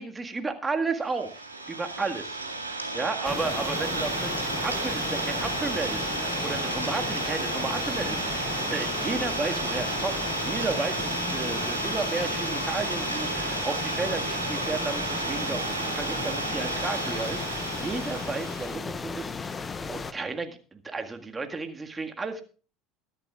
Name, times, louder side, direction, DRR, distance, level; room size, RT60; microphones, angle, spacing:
voice 1, 0.0-1.4 1.7-2.4 2.9-22.4, right 3 dB, 20° right, 5 dB, 1.8 m, -33 dB
Idling, 1.1-18.8, right 2 dB, 90° right, 1.7 m, -32 dB
sound 1, 3.2-20.1, left 4 dB, 25° left, 0.9 m, -35 dB
22.0 x 11.0 x 2.4 m, 0.38 s
figure-of-eight pair, 65°, 0 cm